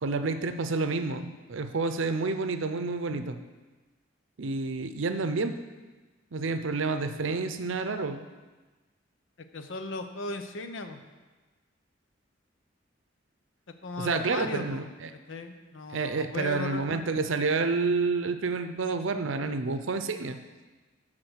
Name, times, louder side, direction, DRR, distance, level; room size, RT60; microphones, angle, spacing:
voice 1, 0.0-3.4 4.4-5.6 6.3-8.2 14.0-15.1 15.9-20.4, right 3 dB, 80° right, 9 dB, 0.6 m, -29 dB
voice 2, 9.4-11.0 13.8-14.9 15.3-17.0, left 2 dB, 75° left, 7 dB, 0.7 m, -37 dB
11.5 x 3.8 x 6.3 m, 1.3 s
head